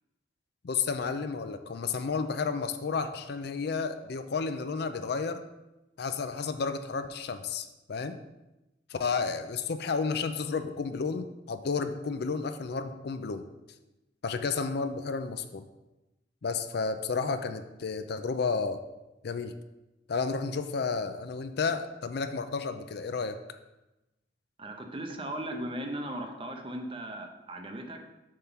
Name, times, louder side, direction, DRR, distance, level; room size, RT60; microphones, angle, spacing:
voice 1, 0.6-5.4 6.0-8.2 8.9-13.4 14.2-15.6 16.4-18.8 19.2-19.5 20.1-23.4, left 5 dB, 60° left, 9 dB, 0.5 m, -32 dB
voice 2, 24.6-28.0, right 1 dB, 30° right, 4 dB, 0.8 m, -37 dB
7.6 x 3.7 x 5.7 m, 0.99 s
head